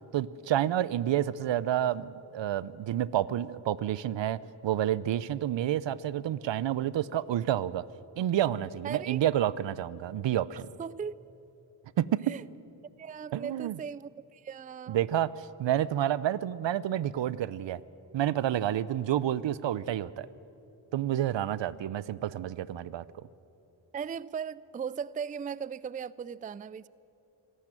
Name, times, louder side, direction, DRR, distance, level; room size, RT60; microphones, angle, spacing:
voice 1, 0.1-7.8 8.2-10.7 12.0-12.4 13.3-13.8 14.9-17.8 18.1-20.3 20.9-23.0, right 11 dB, 70° right, 19 dB, 0.7 m, -29 dB
voice 2, 8.8-9.2 10.5-11.2 12.3-12.4 13.0-15.0 23.9-26.9, right 7 dB, 20° right, 20 dB, 0.4 m, -38 dB
25.5 x 12.5 x 9.0 m, 2.8 s
cardioid pair, 60°, 47 cm